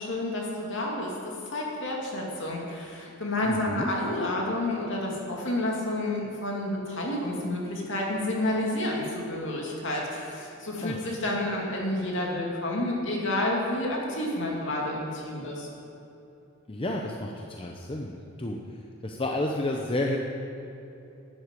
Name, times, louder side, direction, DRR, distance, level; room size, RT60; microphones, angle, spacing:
voice 1, 0.0-15.7, left 1 dB, 60° left, -2 dB, 2.5 m, -30 dB
voice 2, 3.4-3.9 10.8-11.0 16.7-18.1 18.4-18.6 19.0-20.2, left 1 dB, 25° left, 1 dB, 0.7 m, -30 dB
11.5 x 7.9 x 8.2 m, 2.8 s
head